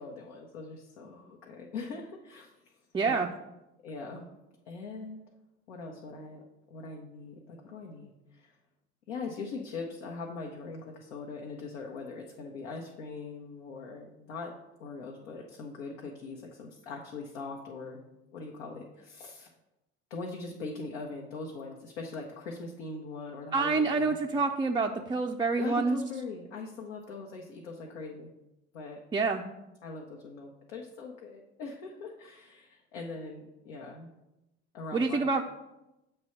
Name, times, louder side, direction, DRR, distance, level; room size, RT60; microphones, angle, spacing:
voice 1, 0.0-2.6 3.0-3.2 3.8-4.3 4.7-5.2 5.7-6.4 6.7-8.6 9.1-14.5 14.8-18.0 18.3-19.5 20.1-24.1 25.6-28.3 28.7-29.0 29.8-34.1 34.7-35.2, left 3 dB, 75° left, 0 dB, 0.9 m, -41 dB
voice 2, 2.9-3.3 23.5-26.0 29.1-29.4 34.9-35.4, right 4 dB, 15° right, 1 dB, 0.4 m, -27 dB
7.0 x 3.3 x 5.7 m, 0.95 s
hypercardioid pair, 65°, 36 cm